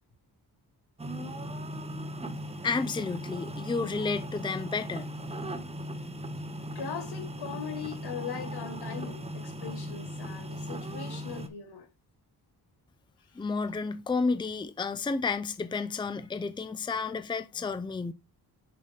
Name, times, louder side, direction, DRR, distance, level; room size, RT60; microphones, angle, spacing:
sound 1, 1.0-11.5, equal, 15° right, 0.8 m, -38 dB
voice 1, 2.6-5.1 13.3-18.1, left 4 dB, 10° left, 0.5 m, -31 dB
voice 2, 6.7-11.9 13.3-13.4, left 7 dB, 85° left, 1.6 m, -40 dB
6.7 x 5.5 x 3.4 m
wide cardioid pair, 115°, 38 cm